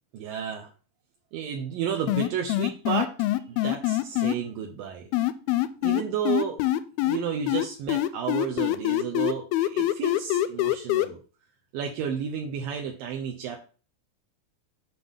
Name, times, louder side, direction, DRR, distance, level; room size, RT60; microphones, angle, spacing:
voice 1, 0.1-0.7 1.3-3.1 3.5-5.1 5.8-6.6 7.0-11.2 11.7-13.6, right 8 dB, 75° right, 2 dB, 2.4 m, -32 dB
sound 1, 2.1-4.4 5.1-7.2 7.5-11.1, left 15 dB, 85° left, 2.4 m, -24 dB
7.8 x 5.9 x 3.6 m, 0.37 s
omnidirectional pair, 4.3 m